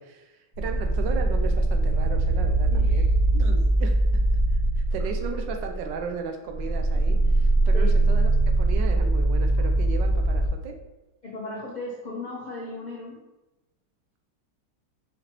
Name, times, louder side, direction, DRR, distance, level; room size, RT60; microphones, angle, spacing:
voice 1, 0.0-3.1 3.4-4.2 4.8-8.3 8.6-10.7, right 5 dB, 85° right, 5 dB, 1.3 m, -36 dB
sound 1, 0.6-6.1 6.5-10.5, right 2 dB, 45° right, 1.1 m, -22 dB
voice 2, 2.7-3.0 3.3-3.6 7.7-7.9 11.2-13.2, left 2 dB, 60° left, -6 dB, 0.4 m, -36 dB
4.8 x 3.2 x 2.9 m, 1.0 s
omnidirectional pair, 1.9 m